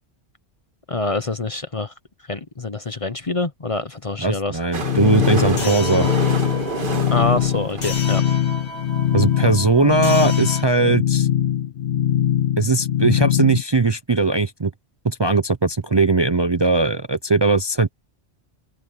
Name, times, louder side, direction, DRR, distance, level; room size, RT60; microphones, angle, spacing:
voice 1, 0.9-1.9 2.3-4.6 5.5-5.7 7.1-8.2, left 2 dB, 30° left, 0.8 m, -26 dB
voice 2, 4.2-6.1 9.1-11.3 12.6-14.7 15.0-17.9, right 3 dB, 25° right, 0.6 m, -19 dB
sound 1, 4.7-8.6 9.3-9.4 9.5-9.6 9.8-9.9 10.3-10.4, right 3 dB, 50° right, 1.8 m, -29 dB
sound 2, 4.8-13.6, left 10 dB, 60° left, 0.6 m, -21 dB
sound 3, 5.6-10.6, left 1 dB, 80° left, 5.2 m, -34 dB
open air
omnidirectional pair, 1.2 m